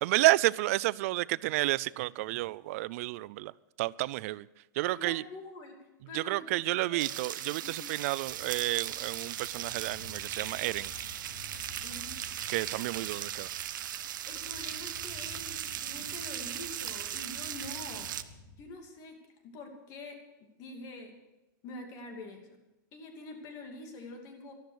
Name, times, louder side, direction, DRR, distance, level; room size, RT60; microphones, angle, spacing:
voice 1, 0.0-3.5 3.8-4.5 4.7-5.2 6.1-10.9 12.5-13.5, right 19 dB, 50° right, 0.4 m, -30 dB
voice 2, 4.9-5.8 6.1-7.1 7.6-7.8 11.8-12.2 14.0-18.1 18.6-19.2 19.5-20.2 20.6-21.1 21.6-22.5 22.9-24.5, left 2 dB, 35° left, 2.8 m, -45 dB
sound 1, 7.0-18.2, right 11 dB, 85° right, 0.9 m, -38 dB
sound 2, 8.3-18.6, left 3 dB, 85° left, 6.4 m, -52 dB
13.0 x 13.0 x 6.4 m
supercardioid pair, 160°, 10 cm